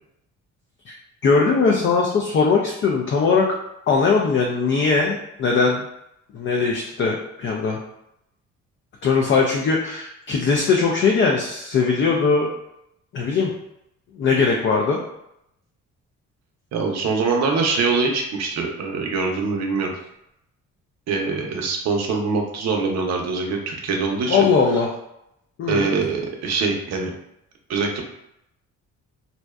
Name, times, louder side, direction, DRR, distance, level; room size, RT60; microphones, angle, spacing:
voice 1, 1.2-3.5 3.9-5.9 6.3-7.8 9.0-12.5 13.1-13.5 14.2-15.0 24.3-24.9 25.6-26.0, left 4 dB, 40° left, 0 dB, 0.4 m, -20 dB
voice 2, 16.7-19.9 21.1-24.5 25.7-27.1 27.7-28.0, right 4 dB, 60° right, 1 dB, 0.6 m, -23 dB
2.6 x 2.1 x 2.2 m, 0.81 s
cardioid pair, 90°, 30 cm